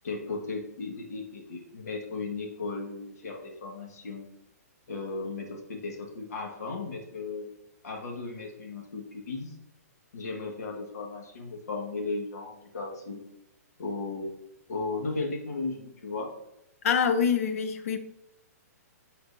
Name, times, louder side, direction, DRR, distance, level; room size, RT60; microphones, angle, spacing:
voice 1, 0.0-4.2 4.9-7.5 7.8-9.6 10.1-13.2 13.8-14.3 14.7-16.3, left 3 dB, 75° left, 1 dB, 1.7 m, -35 dB
voice 2, 16.8-18.0, left 7 dB, 60° left, 9 dB, 0.8 m, -25 dB
10.0 x 4.3 x 2.7 m, 0.86 s
hypercardioid pair, 140°, 9 cm